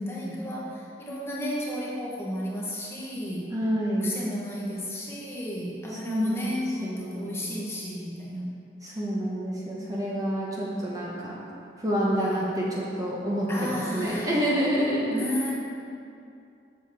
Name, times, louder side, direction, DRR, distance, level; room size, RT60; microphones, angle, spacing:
voice 1, 0.0-3.5 4.0-8.5 9.8-10.4 12.2-12.4 13.5-14.3 15.1-15.5, left 1 dB, 15° left, -5 dB, 1.0 m, -33 dB
voice 2, 3.5-4.2 5.9-6.6 6.8-7.6 8.8-11.5 11.8-15.2, equal, 20° right, -5 dB, 0.8 m, -28 dB
7.2 x 6.4 x 3.4 m, 2.5 s
head